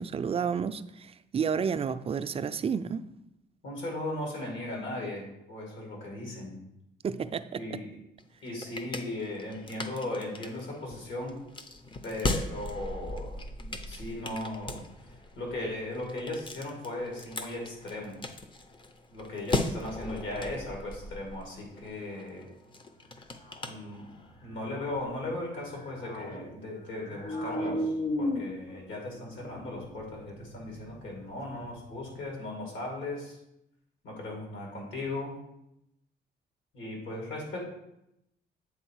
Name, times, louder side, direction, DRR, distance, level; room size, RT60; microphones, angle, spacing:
voice 1, 0.0-3.0 7.0-7.8, right 6 dB, 30° right, 0.4 m, -31 dB
voice 2, 3.6-6.6 7.5-8.0 8.4-11.4 12.0-14.8 15.4-18.2 19.1-22.5 23.7-24.1 24.4-33.4 34.0-35.4 36.7-37.7, left 2 dB, 70° left, 2.4 m, -37 dB
sound 1, 8.2-24.4, left 2 dB, 25° left, 0.6 m, -38 dB
sound 2, 20.9-21.1 22.1-22.5 23.3-23.8 24.4-25.1 25.6-26.5 26.7-27.8, left 1 dB, 45° left, 1.3 m, -45 dB
sound 3, 24.1-26.7 27.0-32.3, left 1 dB, 90° left, 0.9 m, -36 dB
7.9 x 3.6 x 4.7 m
cardioid pair, 90°, 20 cm